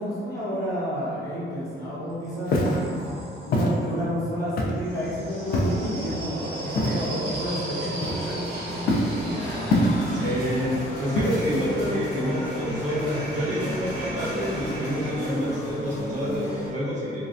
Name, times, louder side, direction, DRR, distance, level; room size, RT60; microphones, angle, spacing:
voice 1, 0.0-2.9 3.4-9.3, equal, 15° left, -11 dB, 0.8 m, -31 dB
sound 1, 1.5-3.9 4.7-15.2, right 1 dB, 60° right, 1.0 m, -37 dB
Walk footsteps, 2.5-2.8 3.5-3.7 4.6-4.9 5.5-5.9 6.7-7.1 8.0-8.5 8.9-9.2 9.7-10.2 11.2-11.6, left 1 dB, 55° left, 0.4 m, -23 dB
sound 2, 7.9-16.7, left 1 dB, 85° left, 1.1 m, -35 dB
voice 2, 10.1-10.7 11.0-17.3, equal, 40° right, -8 dB, 0.7 m, -28 dB
3.1 x 2.6 x 2.4 m, 2.4 s
cardioid pair, 175°, 18 cm